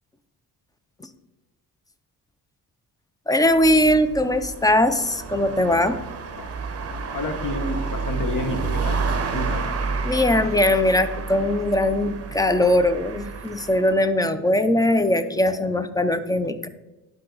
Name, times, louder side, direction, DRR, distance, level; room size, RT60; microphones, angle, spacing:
voice 1, 3.3-6.0 10.0-16.7, left 1 dB, 10° left, 11 dB, 0.5 m, -20 dB
sound 1, 3.4-14.0, right 4 dB, 35° right, 0.9 m, -30 dB
voice 2, 7.1-9.0 9.3-9.6, left 2 dB, 50° left, 5 dB, 1.3 m, -29 dB
11.5 x 3.9 x 3.9 m, 1.0 s
cardioid pair, 100°, 40 cm